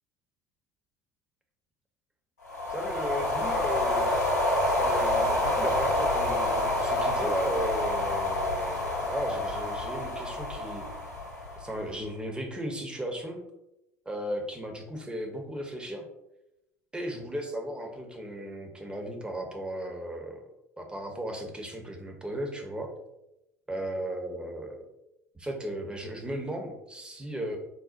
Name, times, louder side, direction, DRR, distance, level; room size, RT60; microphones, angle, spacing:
sound 1, 2.4-11.9, left 1 dB, 85° left, 0.7 m, -28 dB
voice 1, 2.7-4.1 4.8-10.9 11.6-13.4 14.1-16.1 16.9-20.4 20.8-22.9 23.7-24.9 25.3-27.6, right 1 dB, 10° right, 3 dB, 0.7 m, -36 dB
3.9 x 2.1 x 2.5 m, 0.88 s
figure-of-eight pair, 60°, 8 cm